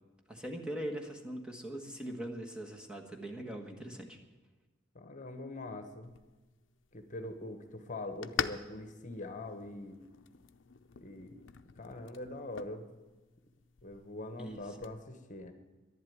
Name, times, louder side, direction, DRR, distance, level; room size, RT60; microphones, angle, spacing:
voice 1, 0.3-4.2 14.4-14.6, right 1 dB, 5° right, 1 dB, 1.4 m, -41 dB
voice 2, 4.9-6.1 6.9-10.0 11.0-11.4 11.8-13.0 13.8-15.5, left 2 dB, 40° left, 8 dB, 1.2 m, -43 dB
sound 1, 6.0-15.0, left 7 dB, 75° left, 0.6 m, -45 dB
11.5 x 11.0 x 9.4 m, 1.2 s
head